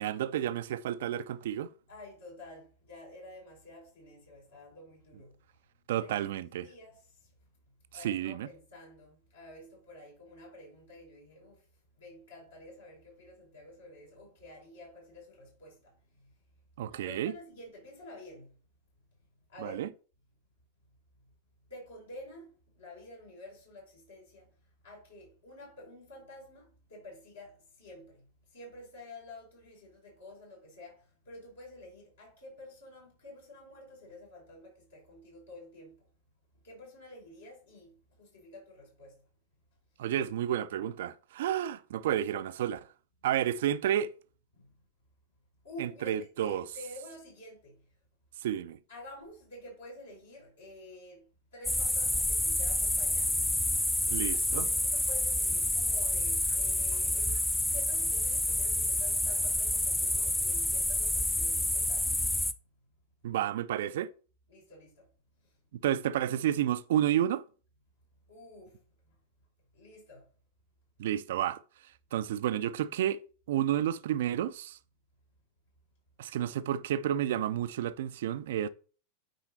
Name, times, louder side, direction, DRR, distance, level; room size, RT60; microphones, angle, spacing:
voice 1, 0.0-1.7 5.9-6.7 8.0-8.5 16.8-17.3 19.6-19.9 40.0-42.9 43.2-44.1 45.8-46.6 48.4-48.8 54.1-54.7 63.2-64.1 65.8-67.4 71.0-71.6 72.1-73.2 73.5-74.8 76.2-78.7, right 11 dB, 55° right, 0.5 m, -31 dB
voice 2, 1.9-5.4 5.9-7.3 7.9-11.6 12.0-16.3 16.9-18.5 19.5-19.8 21.7-24.5 24.8-36.0 36.6-39.2 44.5-44.7 45.6-47.8 48.9-51.3 51.5-53.5 54.0-57.4 57.7-62.1 64.5-65.1 68.3-68.8 69.7-70.3, left 1 dB, 65° left, 4.7 m, -50 dB
sound 1, 51.6-62.5, left 1 dB, 5° left, 0.6 m, -29 dB
9.2 x 4.8 x 4.3 m
figure-of-eight pair, 90°, 0 cm